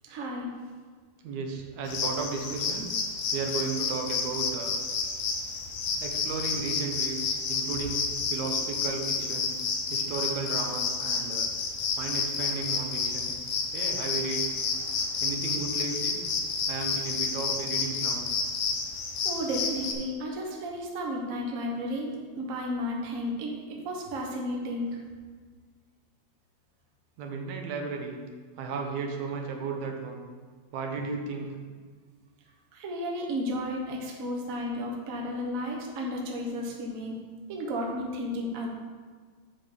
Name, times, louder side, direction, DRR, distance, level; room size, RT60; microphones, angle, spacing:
voice 1, 0.1-0.6 19.2-25.0 32.7-37.2 37.5-38.7, equal, 60° right, -1 dB, 0.8 m, -33 dB
voice 2, 1.2-2.9 3.3-4.7 6.0-9.5 9.9-11.5 12.0-13.3 13.7-14.5 15.2-16.2 16.7-18.2 27.2-28.2 28.6-30.2 30.7-31.6, right 4 dB, 80° right, 2 dB, 2.3 m, -34 dB
sound 1, 1.8-19.9, left 5 dB, 90° left, 2.4 m, -30 dB
9.0 x 3.9 x 6.6 m, 1.5 s
omnidirectional pair, 3.3 m